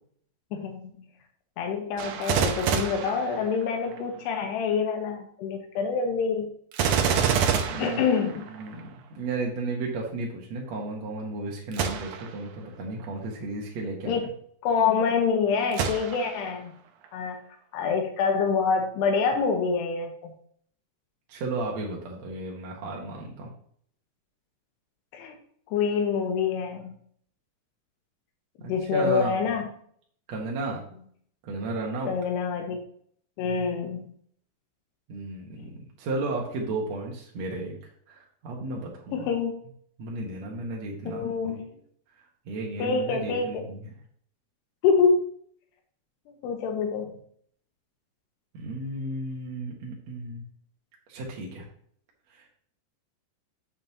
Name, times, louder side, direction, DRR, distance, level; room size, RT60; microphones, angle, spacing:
voice 1, 0.5-0.9 1.6-6.5 7.8-8.5 14.1-14.3 14.6-16.8 17.1-17.4 17.7-20.3 25.1-25.3 25.7-26.9 28.6-29.7 32.1-32.8 33.4-34.1 39.1-39.6 41.1-41.7 42.8-43.6 44.8-45.3 46.4-47.1, left 5 dB, 85° left, 4 dB, 3.0 m, -26 dB
Gunshot gunfire, 2.0-4.0 6.7-8.8 11.7-12.4 13.0-13.1 15.7-16.5 17.0-17.1, right 7 dB, 80° right, 1.8 m, -27 dB
voice 2, 7.7-8.0 8.5-14.2 21.3-23.5 28.6-29.4 30.3-30.8 31.4-32.2 35.1-37.8 38.1-39.3 40.0-41.5 42.5-43.9 48.5-50.4 51.1-51.7 52.3-52.5, right 2 dB, 60° right, -2 dB, 1.9 m, -34 dB
8.7 x 7.2 x 2.8 m, 0.62 s
omnidirectional pair, 4.7 m